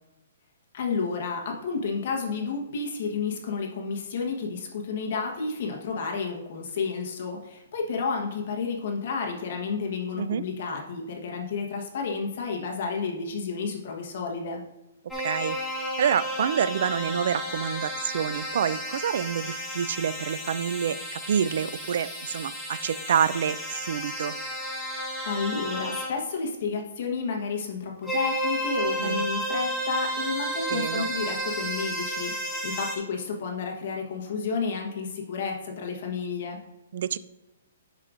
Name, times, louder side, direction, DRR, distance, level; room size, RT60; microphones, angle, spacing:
voice 1, 0.7-14.6 25.2-36.6, left 5 dB, 45° left, 2 dB, 1.2 m, -31 dB
sound 1, 15.1-26.1 28.0-33.0, equal, ahead, 1.1 m, -32 dB
voice 2, 15.2-15.6 16.0-24.4 29.0-29.2 30.7-31.1 36.9-37.2, right 8 dB, 55° right, 16 dB, 0.3 m, -27 dB
11.0 x 4.9 x 2.5 m, 0.99 s
hypercardioid pair, 170°, 0 cm